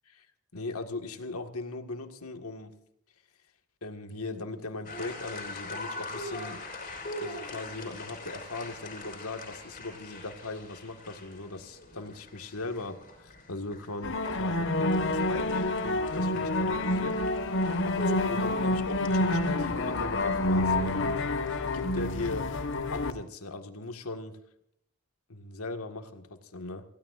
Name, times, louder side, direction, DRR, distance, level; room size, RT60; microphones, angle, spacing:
voice 1, 0.5-2.7 3.8-6.6 7.0-21.4 21.7-22.5 22.9-24.4 25.3-26.8, left 2 dB, 85° left, 6 dB, 1.8 m, -39 dB
sound 1, 4.8-22.3, left 2 dB, 40° left, 4.9 m, -43 dB
sound 2, 14.0-23.1, left 2 dB, 60° left, 1.3 m, -28 dB
28.0 x 16.0 x 2.6 m, 0.73 s
head